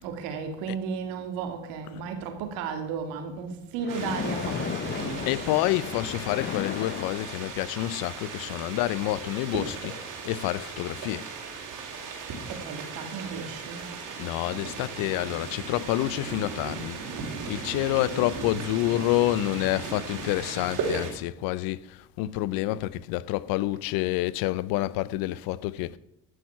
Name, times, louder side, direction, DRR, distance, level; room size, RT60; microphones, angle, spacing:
voice 1, 0.0-5.7 12.5-13.9, right 5 dB, 85° right, 2.5 m, -34 dB
Splash splatter, 3.8-7.8, left 8 dB, 35° left, 0.6 m, -35 dB
sound 1, 3.9-21.1, right 4 dB, 65° right, 4.3 m, -37 dB
voice 2, 5.3-9.9 10.2-11.3 14.2-17.0 17.5-26.0, left 16 dB, 80° left, 0.7 m, -28 dB
14.5 x 6.5 x 5.8 m
supercardioid pair, 85°, 34 cm